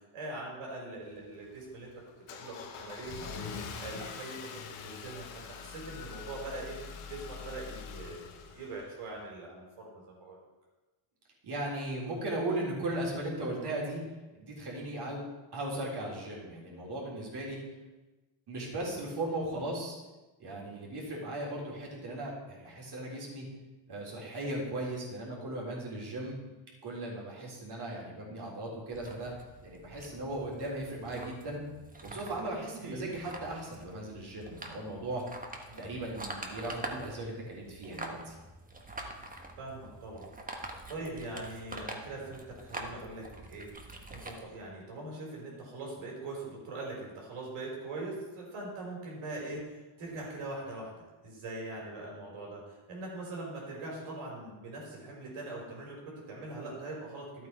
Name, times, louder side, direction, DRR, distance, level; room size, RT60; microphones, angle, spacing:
voice 1, 0.1-1.9 2.3-3.5 3.8-4.4 4.8-6.8 7.0-10.4 32.8-33.0 35.7-35.9 39.6-57.5, right 2 dB, 80° right, -2 dB, 4.5 m, -42 dB
Car / Engine starting, 1.0-9.2, left 6 dB, 90° left, 1.4 m, -44 dB
voice 2, 11.4-14.0 14.3-15.2 15.5-17.6 18.5-20.0 20.4-23.5 23.9-26.4 26.8-29.3 29.6-31.6 32.0-35.2 35.8-38.4, right 1 dB, 50° right, -3 dB, 3.8 m, -37 dB
sound 1, 28.9-44.4, right 2 dB, 15° right, 1.4 m, -45 dB
11.5 x 8.3 x 4.7 m, 1.1 s
cardioid pair, 105°, 50 cm